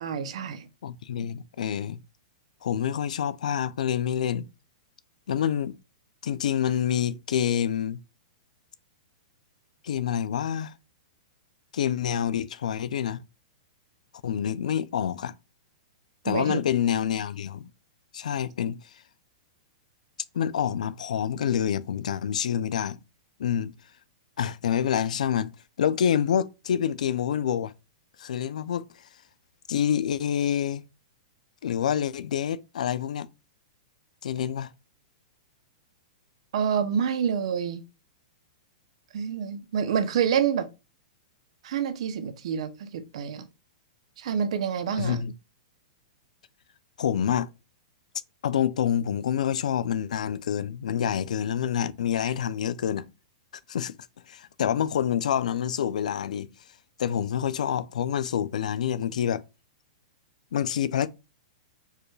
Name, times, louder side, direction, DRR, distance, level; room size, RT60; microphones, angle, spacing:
voice 1, 0.0-0.7 16.3-16.6 36.5-37.8 39.1-40.7 41.6-43.4 44.2-45.2, right 7 dB, 55° right, 0.6 m, -27 dB
voice 2, 0.8-2.0 2.6-4.5 5.3-5.8 6.2-8.0 9.8-10.7 11.7-13.2 14.2-15.3 16.2-17.7 18.1-18.8 20.3-23.0 23.4-23.7 24.4-25.5 25.8-27.7 28.2-28.8 29.7-30.8 31.6-33.3 34.2-34.7 45.0-45.3 47.0-47.5 48.4-53.1 53.7-53.9 54.3-56.5 57.0-59.4 60.5-61.1, left 9 dB, 85° left, 0.4 m, -27 dB
4.6 x 2.3 x 3.1 m
hypercardioid pair, 170°, 4 cm